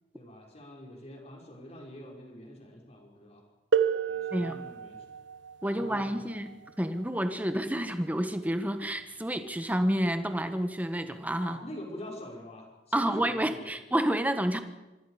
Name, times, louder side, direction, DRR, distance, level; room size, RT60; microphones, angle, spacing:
voice 1, 0.1-3.4 4.1-5.0 5.6-6.3 11.4-13.8, left 1 dB, 35° left, -1 dB, 5.4 m, -45 dB
sound 1, 3.7-9.2 10.2-10.3 11.1-11.3, right 7 dB, 75° right, 1.2 m, -33 dB
voice 2, 5.6-11.6 12.9-14.6, right 1 dB, 10° right, 8 dB, 1.3 m, -29 dB
25.5 x 24.5 x 5.0 m, 1.1 s
head